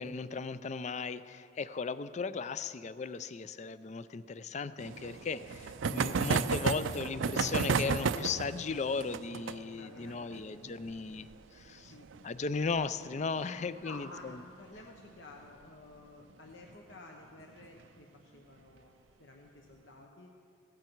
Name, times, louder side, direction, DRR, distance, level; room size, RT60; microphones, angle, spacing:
voice 1, 0.0-11.9 12.2-14.1, left 4 dB, 35° left, 15 dB, 0.4 m, -36 dB
sound 1, 4.8-14.0 14.3-14.4 14.6-14.7 15.0-15.1 16.5-16.7 17.4-17.8, right 5 dB, 80° right, 0.5 m, -34 dB
voice 2, 9.7-10.8 11.9-12.1 13.8-18.9 19.2-20.3, left 2 dB, 70° left, 1 dB, 1.0 m, -52 dB
16.5 x 14.0 x 4.6 m, 2.6 s
head